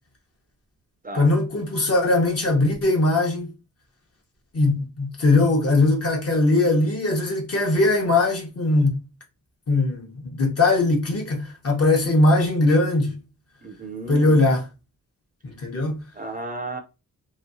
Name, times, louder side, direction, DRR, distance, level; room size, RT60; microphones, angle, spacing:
voice 1, 1.1-3.5 4.5-9.0 9.7-13.2 14.1-14.6 15.4-16.0, left 2 dB, 45° left, 1.0 m, -20 dB
voice 2, 13.6-14.5 16.1-16.8, right 2 dB, 25° right, 0.4 m, -33 dB
3.0 x 2.7 x 2.6 m
wide cardioid pair, 150°, 33 cm